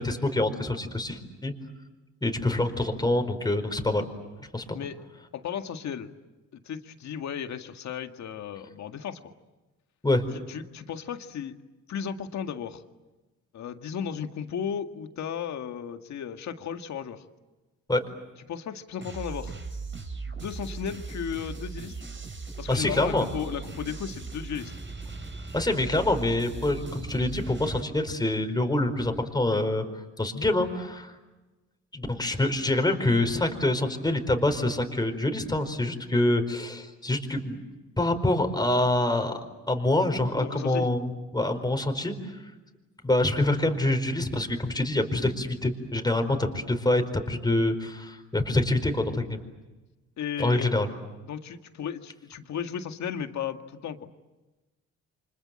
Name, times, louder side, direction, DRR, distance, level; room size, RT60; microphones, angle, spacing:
voice 1, 0.0-1.5 2.2-4.0 4.5-4.8 10.0-10.2 17.9-18.0 22.7-23.2 25.5-29.8 30.2-31.1 31.9-37.6 38.0-39.3 39.7-42.2 43.0-49.4 50.4-50.9, left 1 dB, 15° left, 6 dB, 4.6 m, -26 dB
voice 2, 5.3-6.1 6.5-9.3 10.5-11.6 11.9-12.8 13.5-17.2 18.5-19.5 20.3-22.0 22.6-24.7 40.4-40.9 50.2-50.7 51.2-54.1, left 8 dB, 65° left, 6 dB, 2.0 m, -35 dB
sound 1, 19.0-27.8, right 4 dB, 40° right, 5.4 m, -38 dB
30.0 x 25.5 x 7.7 m, 1.1 s
cardioid pair, 90°, 30 cm